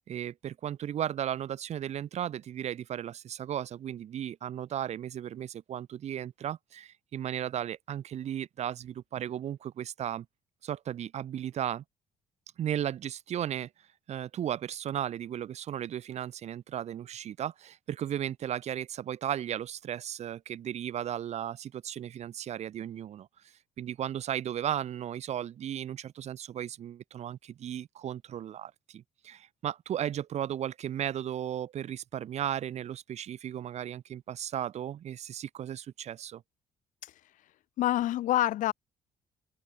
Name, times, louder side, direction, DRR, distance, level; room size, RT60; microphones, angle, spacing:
voice 1, 0.1-10.3 10.6-11.8 12.6-13.7 14.1-36.4, right 10 dB, 55° right, 2.8 m, -35 dB
voice 2, 37.8-38.7, left 14 dB, 75° left, 4.0 m, -27 dB
open air
cardioid pair, 125°, 13 cm